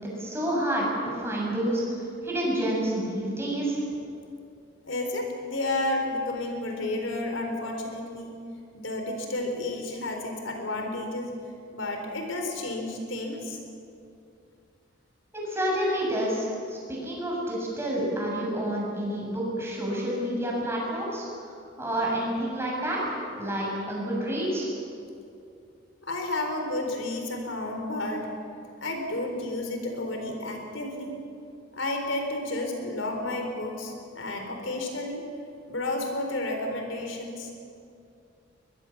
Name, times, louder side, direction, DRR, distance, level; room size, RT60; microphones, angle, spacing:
voice 1, 0.0-3.8 15.3-24.7, right 1 dB, 15° right, -3 dB, 7.1 m, -29 dB
voice 2, 4.8-8.3 8.7-11.3 11.7-13.6 26.0-28.3 28.8-31.2 31.7-35.2 35.7-37.5, left 2 dB, 85° left, 3 dB, 4.0 m, -31 dB
23.5 x 21.0 x 7.3 m, 2.5 s
head